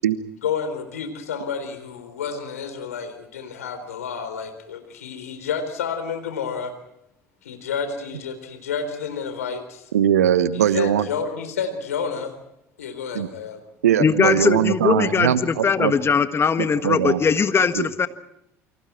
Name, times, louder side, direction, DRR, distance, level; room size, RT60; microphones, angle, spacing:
voice 1, 0.4-6.7 7.4-9.8 10.5-12.3 12.8-13.6, left 6 dB, 85° left, 8 dB, 3.9 m, -30 dB
voice 2, 9.9-11.1 13.1-13.3 13.8-15.9 16.6-17.2 17.7-17.9, right 10 dB, 80° right, 14 dB, 1.2 m, -20 dB
voice 3, 14.0-18.1, left 6 dB, 30° left, 11 dB, 1.5 m, -20 dB
29.0 x 24.5 x 4.5 m, 0.81 s
hypercardioid pair, 60°, 8 cm